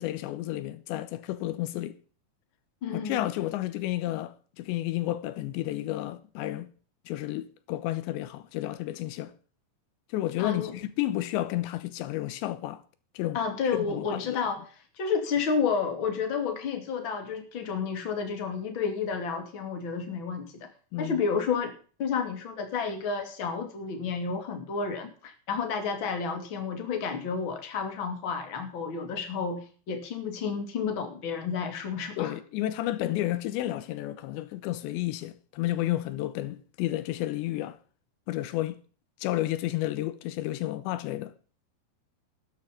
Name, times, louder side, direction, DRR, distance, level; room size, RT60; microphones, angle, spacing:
voice 1, 0.0-2.0 2.9-6.7 7.1-9.3 10.1-12.8 13.1-13.4 13.9-14.4 20.9-21.2 32.2-37.8 38.3-38.8 39.2-41.3, left 15 dB, 90° left, 3.1 m, -31 dB
voice 2, 2.8-3.3 10.4-10.7 13.3-14.6 15.0-20.7 21.0-21.7 22.0-32.3, left 5 dB, 35° left, 2.6 m, -31 dB
13.0 x 9.4 x 5.3 m
omnidirectional pair, 5.1 m